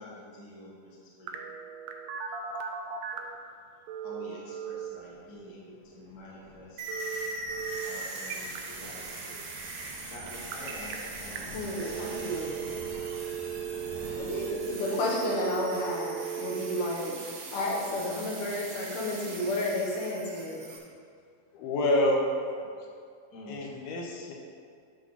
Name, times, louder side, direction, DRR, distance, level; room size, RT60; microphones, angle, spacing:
voice 1, 0.0-1.4 4.0-7.0 7.5-9.6 10.1-13.1 23.3-23.7, left 1 dB, 40° left, -6 dB, 1.3 m, -47 dB
Telephone, 1.3-3.4 3.9-4.9 6.9-7.9 8.2-8.6 10.3-10.9 11.4-11.5 11.8-16.9, right 9 dB, 90° right, 2.7 m, -37 dB
sound 1, 4.8-14.8, left 1 dB, 25° left, 1.0 m, -49 dB
sound 2, 6.8-20.8, right 2 dB, 70° right, 3.0 m, -41 dB
voice 2, 11.5-12.8 14.2-17.1 17.5-20.6, left 1 dB, 65° left, -2 dB, 2.6 m, -32 dB
voice 3, 21.5-22.3 22.6-22.7 23.5-24.3, left 1 dB, 85° left, -1 dB, 3.0 m, -27 dB
11.5 x 3.8 x 5.8 m, 2.3 s
omnidirectional pair, 4.4 m